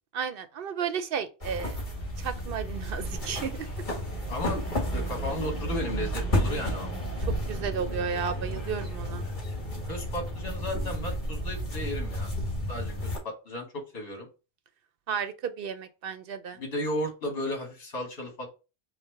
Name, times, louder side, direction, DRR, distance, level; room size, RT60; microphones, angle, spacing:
voice 1, 0.1-1.8 2.2-3.7 7.2-9.2 15.1-16.6, right 7 dB, 60° right, 0.7 m, -33 dB
sound 1, 1.4-13.2, equal, 45° left, 1.8 m, -32 dB
voice 2, 4.3-6.9 9.8-12.3 12.7-14.3 16.6-18.5, left 1 dB, 60° left, 1.6 m, -34 dB
5.4 x 2.1 x 4.4 m
omnidirectional pair, 1.2 m